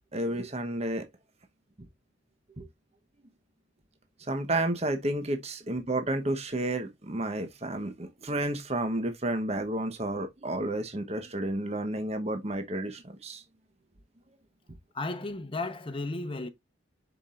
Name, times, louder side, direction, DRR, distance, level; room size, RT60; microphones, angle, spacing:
voice 1, 0.1-1.0 2.6-2.7 4.3-13.4, right 1 dB, 35° right, 1.0 m, -31 dB
voice 2, 14.9-16.5, left 2 dB, 30° left, 0.9 m, -34 dB
7.1 x 6.0 x 2.4 m
head